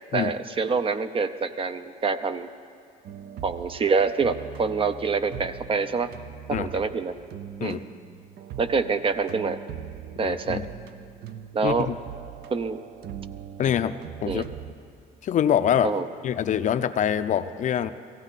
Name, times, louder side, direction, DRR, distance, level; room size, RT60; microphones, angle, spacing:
voice 1, 0.1-2.5 3.4-6.1 6.5-7.1 7.6-7.8 8.6-9.6 10.2-10.6 11.5-11.9 12.5-12.8 14.3-14.5 15.8-16.1, right 4 dB, 30° right, 11 dB, 0.6 m, -26 dB
sound 1, 3.0-14.7, right 9 dB, 70° right, 0.6 m, -41 dB
voice 2, 10.2-10.6 11.6-11.9 13.6-13.9 14.2-14.4 15.2-15.9 16.2-17.9, left 9 dB, 45° left, 11 dB, 0.5 m, -24 dB
17.0 x 15.5 x 4.1 m, 2.5 s
cardioid pair, 110°, 17 cm